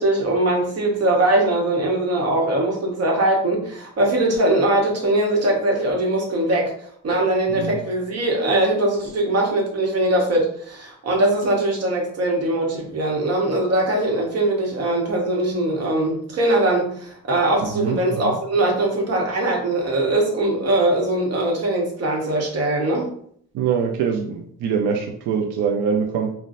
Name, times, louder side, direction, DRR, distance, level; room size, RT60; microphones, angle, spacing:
voice 1, 0.0-6.7 7.0-23.1, right 1 dB, 55° right, 0 dB, 1.1 m, -21 dB
voice 2, 17.6-18.4 23.5-26.3, right 6 dB, 80° right, 3 dB, 0.5 m, -24 dB
3.8 x 2.2 x 2.6 m, 0.63 s
cardioid pair, 90°, 30 cm